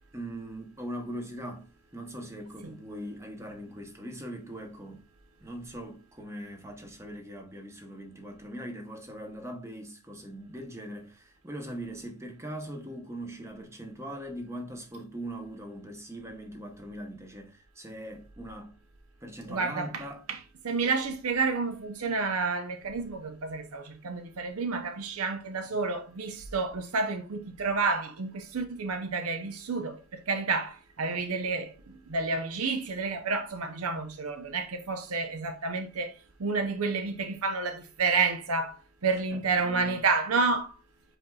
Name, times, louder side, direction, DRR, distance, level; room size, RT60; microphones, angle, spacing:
voice 1, 0.1-5.1 5.4-18.8 19.2-20.2 39.3-40.0, right 1 dB, 15° right, 0.8 m, -41 dB
voice 2, 19.5-20.4 20.6-30.0 30.3-40.7, right 4 dB, 85° right, 0.7 m, -30 dB
5.1 x 4.5 x 2.3 m
head